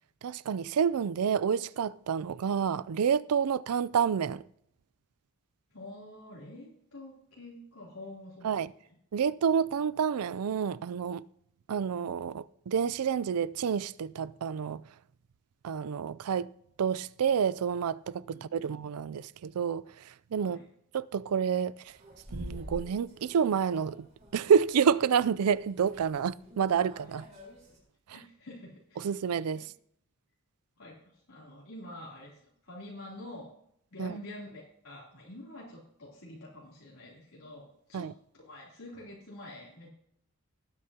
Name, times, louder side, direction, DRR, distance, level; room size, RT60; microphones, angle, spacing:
voice 1, 0.2-4.4 8.4-8.7 9.1-11.2 11.7-14.8 15.6-16.5 16.8-20.6 20.9-21.7 22.3-24.1 24.3-27.2 29.0-29.7 34.0-34.2 37.9-38.1, right 7 dB, 90° right, 0.4 m, -29 dB
voice 2, 5.7-8.5 18.3-18.7 20.4-20.6 28.1-29.1 29.6-29.7 30.8-33.5 33.9-39.9, left 1 dB, 90° left, 3.1 m, -47 dB
sound 1, 21.9-27.8, equal, 30° right, 4.1 m, -47 dB
19.0 x 8.8 x 2.8 m
head